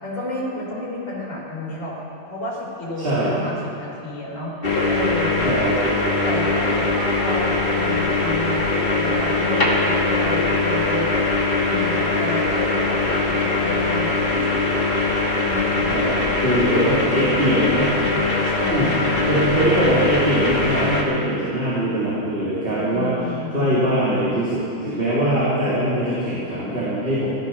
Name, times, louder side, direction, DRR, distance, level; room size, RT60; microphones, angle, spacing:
voice 1, 0.0-1.9 2.3-4.5 4.8-5.5 6.2-11.2 11.7-14.9 15.3-16.0 18.4-19.1 22.9-23.7, left 1 dB, 70° left, -4 dB, 4.4 m, -31 dB
voice 2, 3.0-3.3 5.4-5.8 15.9-17.9 18.7-18.9 19.2-27.3, right 1 dB, 25° right, -10 dB, 3.2 m, -22 dB
sound 1, 4.6-21.0, left 2 dB, 30° left, 1.9 m, -21 dB
15.0 x 14.5 x 5.9 m, 2.7 s
omnidirectional pair, 2.2 m